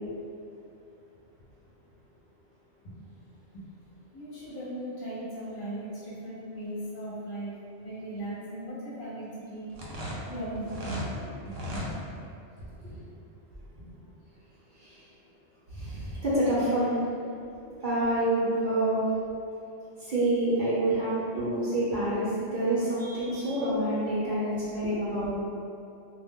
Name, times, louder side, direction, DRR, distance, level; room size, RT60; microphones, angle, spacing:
voice 1, 4.1-7.5 7.8-9.7 10.3-11.1 11.4-11.9, right 1 dB, 50° left, -9 dB, 0.8 m, -38 dB
sound 1, 9.7-11.1 11.5-11.9, equal, 85° right, 0.9 m, -36 dB
voice 2, 15.7-17.0 17.8-19.0 20.0-25.3, right 1 dB, 50° right, -11 dB, 0.7 m, -27 dB
2.2 x 2.0 x 3.4 m, 2.6 s
omnidirectional pair, 1.2 m